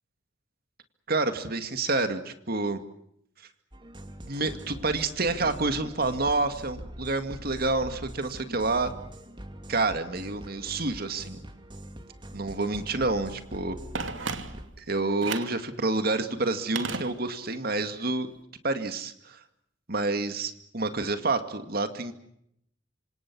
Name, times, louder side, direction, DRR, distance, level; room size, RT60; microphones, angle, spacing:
voice 1, 1.1-2.8 4.2-8.9 9.7-11.4 12.3-13.8 14.8-18.3 18.6-19.4 19.9-22.1, right 3 dB, 55° right, 8 dB, 2.2 m, -28 dB
sound 1, 3.7-14.7, equal, 25° right, 2.5 m, -43 dB
Telephone, 13.9-14.8 15.2-15.6 16.8-17.6 17.9-18.0, right 4 dB, 80° right, 2.6 m, -34 dB
27.0 x 26.5 x 6.2 m, 0.74 s
head